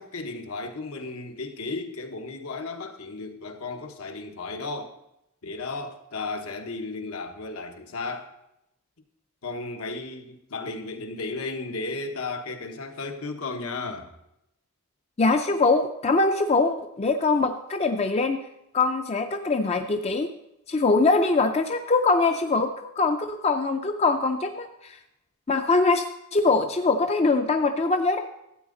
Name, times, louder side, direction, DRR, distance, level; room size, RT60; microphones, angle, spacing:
voice 1, 0.0-5.0 5.4-8.3 9.4-14.1, left 3 dB, 75° left, 5 dB, 1.1 m, -34 dB
voice 2, 15.2-18.4 18.7-20.3 20.7-25.0 25.5-26.0 26.3-28.2, left 3 dB, 30° left, 6 dB, 0.4 m, -23 dB
13.0 x 8.5 x 3.8 m, 0.84 s
head